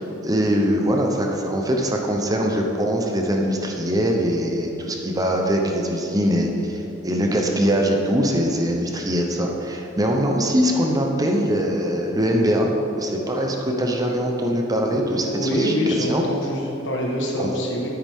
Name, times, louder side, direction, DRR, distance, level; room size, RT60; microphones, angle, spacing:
voice 1, 0.0-12.7 13.0-16.2 17.4-17.5, equal, 20° right, 1 dB, 0.7 m, -22 dB
voice 2, 15.3-17.9, left 1 dB, 65° left, -1 dB, 1.5 m, -24 dB
9.5 x 8.5 x 3.6 m, 2.9 s
head